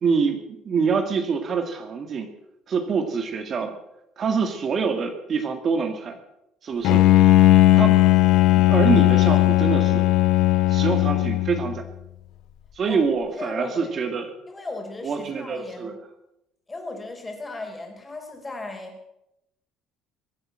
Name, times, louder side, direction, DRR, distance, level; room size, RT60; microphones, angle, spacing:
voice 1, 0.0-2.3 2.7-3.8 4.2-6.2 6.6-7.0 7.8-8.0 8.6-10.0 10.7-11.8 12.8-14.3 15.0-16.0, right 5 dB, 40° right, 6 dB, 1.9 m, -25 dB
Bowed string instrument, 6.8-11.8, left 15 dB, 70° left, 0.7 m, -17 dB
voice 2, 13.3-14.0 14.5-16.0 16.7-19.1, left 3 dB, 15° left, 4 dB, 4.0 m, -36 dB
23.0 x 8.2 x 7.5 m, 0.86 s
cardioid pair, 125°, 0 cm